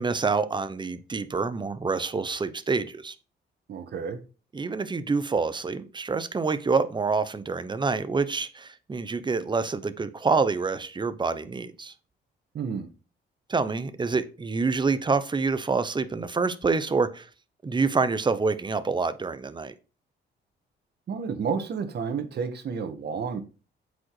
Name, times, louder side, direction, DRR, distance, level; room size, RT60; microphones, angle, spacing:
voice 1, 0.0-3.1 4.5-11.9 13.5-17.3 17.6-19.7, right 4 dB, 25° right, 0.9 m, -27 dB
voice 2, 3.7-4.2 12.5-12.9 21.1-23.4, right 6 dB, 55° right, 1.6 m, -31 dB
8.0 x 5.2 x 4.8 m
cardioid pair, 90°, 20 cm